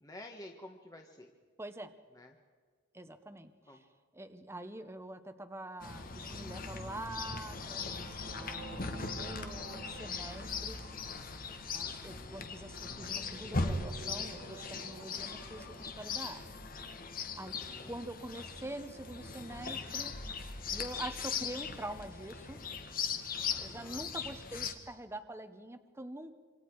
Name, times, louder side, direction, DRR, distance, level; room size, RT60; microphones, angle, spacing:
voice 1, 0.0-1.3 2.1-2.3 3.7-3.8 11.8-12.5 17.4-17.9 23.5-24.1, left 1 dB, 20° left, 2 dB, 1.5 m, -52 dB
voice 2, 1.6-2.0 2.9-3.8 4.1-10.8 11.7-16.5 17.4-17.6 17.9-20.2 20.7-22.6 23.6-26.4, right 1 dB, 15° right, 8 dB, 1.1 m, -45 dB
Chirp tweet, 5.8-24.7, left 4 dB, 50° left, 1.8 m, -39 dB
sound 1, 6.0-16.7, right 2 dB, 65° right, 1.9 m, -52 dB
27.0 x 26.0 x 4.8 m, 1.5 s
head